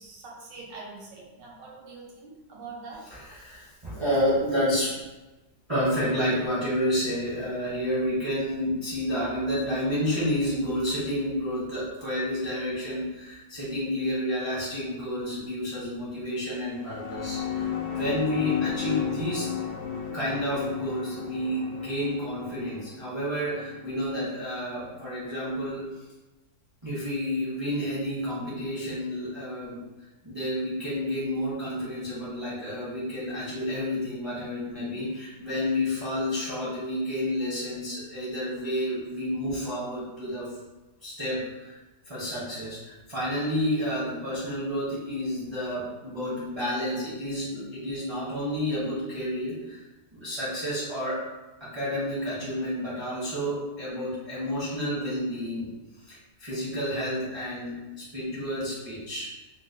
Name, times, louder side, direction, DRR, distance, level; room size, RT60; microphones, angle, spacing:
voice 1, 0.0-3.0, right 3 dB, 85° right, -3 dB, 1.5 m, -44 dB
voice 2, 3.1-5.0 5.7-19.5 20.1-25.8 26.8-29.8 30.2-40.5 41.0-41.8 42.1-49.8 50.1-51.2 51.6-55.7 56.0-59.3, equal, 25° right, -9 dB, 0.6 m, -30 dB
sound 1, 16.6-25.3, left 8 dB, 80° left, 0.6 m, -34 dB
3.8 x 2.2 x 2.6 m, 1.1 s
omnidirectional pair, 1.9 m